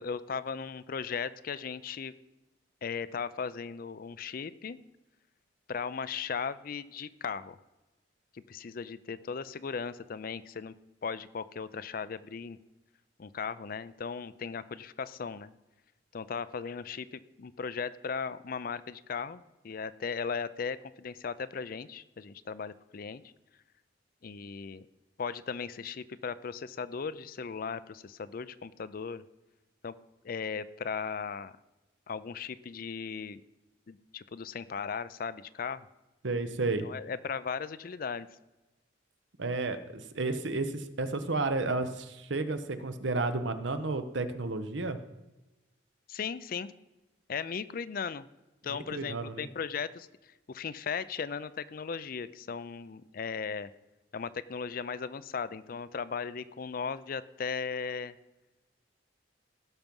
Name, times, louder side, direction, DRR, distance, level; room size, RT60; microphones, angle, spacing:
voice 1, 0.0-2.1 2.8-4.8 5.7-7.6 8.5-10.7 11.0-12.6 13.2-15.5 16.1-23.3 24.2-24.9 25.2-29.2 29.8-29.9 30.2-31.5 32.1-33.4 33.9-35.9 36.8-38.3 46.1-46.7 47.3-48.3 48.6-53.7 54.1-58.1, left 6 dB, 50° left, 16 dB, 0.4 m, -37 dB
voice 2, 36.2-36.9 39.4-45.0 48.6-49.5, right 3 dB, 75° right, 10 dB, 0.9 m, -32 dB
16.5 x 6.0 x 5.4 m, 1.1 s
head